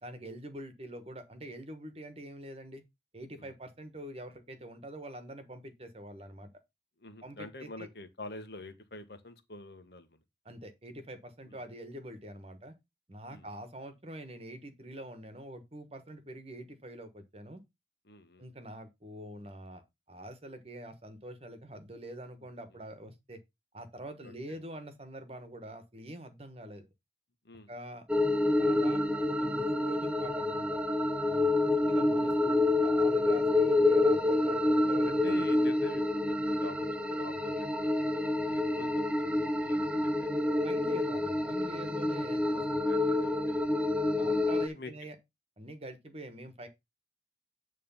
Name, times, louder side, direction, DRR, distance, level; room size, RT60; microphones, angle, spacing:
voice 1, 0.0-2.8 3.1-6.5 7.2-7.9 10.4-12.7 13.1-17.6 18.4-19.8 20.1-23.4 23.7-26.8 27.7-28.1 28.6-30.8 31.3-35.4 40.6-42.6 44.2-45.2 45.6-46.7, right 1 dB, 35° right, 1.2 m, -45 dB
voice 2, 7.0-10.2 11.5-11.6 13.3-13.5 18.1-18.4 24.2-24.6 27.4-27.7 31.6-31.7 35.0-40.4 42.5-43.7 44.2-44.9, left 2 dB, 65° left, 1.3 m, -47 dB
sound 1, 28.1-44.7, left 2 dB, 5° right, 0.5 m, -28 dB
9.4 x 3.3 x 5.5 m
head